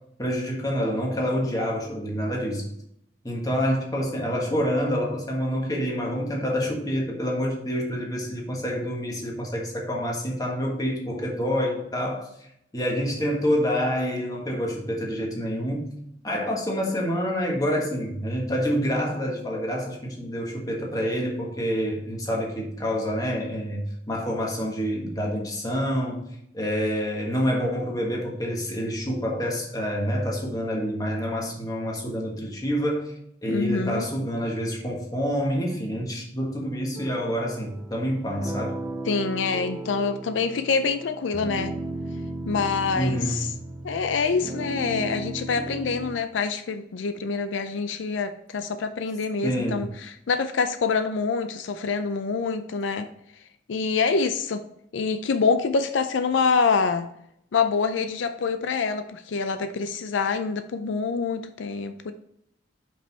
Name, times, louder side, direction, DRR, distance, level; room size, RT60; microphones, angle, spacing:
voice 1, 0.2-2.7 3.2-12.3 12.7-15.9 16.2-26.2 26.5-33.1 33.4-38.8 42.9-43.5 49.4-49.8, equal, 20° left, -1 dB, 1.4 m, -27 dB
voice 2, 33.5-34.1 39.1-41.7 42.5-43.5 43.8-53.1 53.7-54.7 54.9-57.1 57.5-62.1, left 5 dB, 80° left, 9 dB, 0.4 m, -26 dB
sound 1, 36.9-46.2, right 2 dB, 20° right, 0.4 m, -36 dB
5.5 x 5.2 x 4.1 m, 0.75 s
head